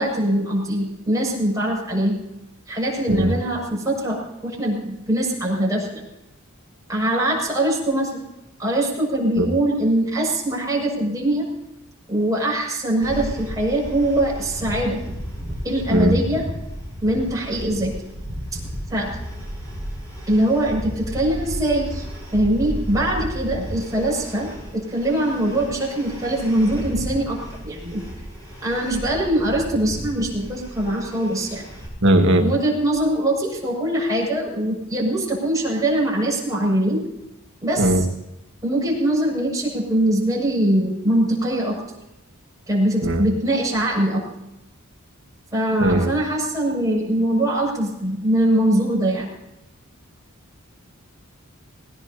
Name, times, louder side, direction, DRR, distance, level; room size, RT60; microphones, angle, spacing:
voice 1, 0.0-2.2 2.7-6.0 6.9-8.2 8.6-11.5 12.1-15.0 15.6-16.4 17.0-17.9 18.5-18.6 18.9-19.1 20.3-22.1 22.3-27.4 27.6-28.0 28.6-31.6 32.4-37.0 37.6-38.1 38.6-41.8 42.7-44.2 45.5-49.3, right 1 dB, 15° right, -4 dB, 6.8 m, -22 dB
sound 1, 13.0-31.9, equal, 15° left, 6.7 m, -33 dB
voice 2, 32.0-32.5 37.8-38.0 43.0-43.2 45.8-46.1, right 1 dB, 55° right, 3 dB, 1.9 m, -18 dB
20.0 x 19.5 x 2.9 m, 0.92 s
head